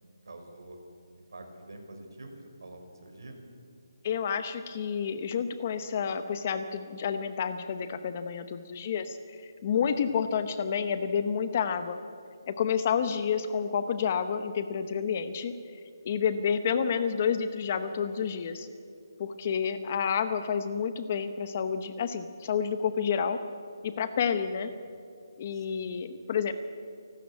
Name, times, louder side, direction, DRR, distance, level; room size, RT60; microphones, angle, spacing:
voice 1, 0.3-0.8 1.1-3.4 9.7-10.0 19.9-20.0 24.6-24.7 25.5-25.8, right 2 dB, 70° right, 4 dB, 5.0 m, -47 dB
voice 2, 4.0-9.4 9.6-12.0 12.5-15.5 16.0-18.7 19.2-23.4 23.8-24.7 25.4-26.5, left 7 dB, 25° left, 10 dB, 0.9 m, -29 dB
29.0 x 12.5 x 8.5 m, 2.4 s
hypercardioid pair, 175°, 2 cm